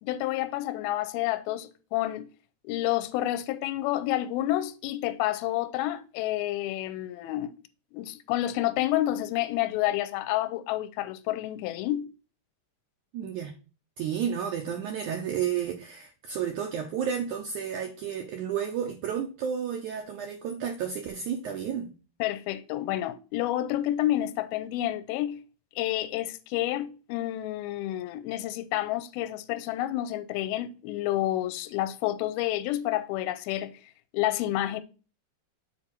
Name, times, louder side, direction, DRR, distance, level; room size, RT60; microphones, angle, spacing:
voice 1, 0.0-2.3 2.6-7.5 7.9-12.1 22.2-25.4 25.8-33.8 34.1-34.8, left 14 dB, 85° left, 2.5 m, -29 dB
voice 2, 13.1-13.6 14.0-21.9, right 8 dB, 85° right, 1.7 m, -32 dB
7.2 x 4.6 x 4.3 m
omnidirectional pair, 4.4 m